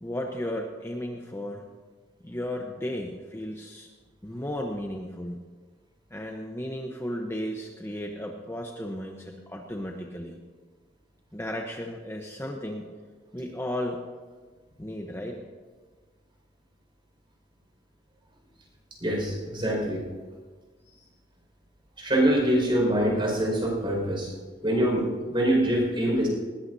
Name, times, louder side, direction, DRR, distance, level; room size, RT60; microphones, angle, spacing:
voice 1, 0.0-1.7 2.2-3.9 4.2-5.4 6.1-10.4 11.3-12.9 13.3-14.0 14.8-15.4 20.9-21.0, left 1 dB, 15° left, 1 dB, 0.9 m, -34 dB
voice 2, 19.0-20.1 22.0-24.3 24.6-26.3, right 1 dB, 30° right, -1 dB, 5.3 m, -24 dB
20.0 x 17.5 x 2.7 m, 1.4 s
head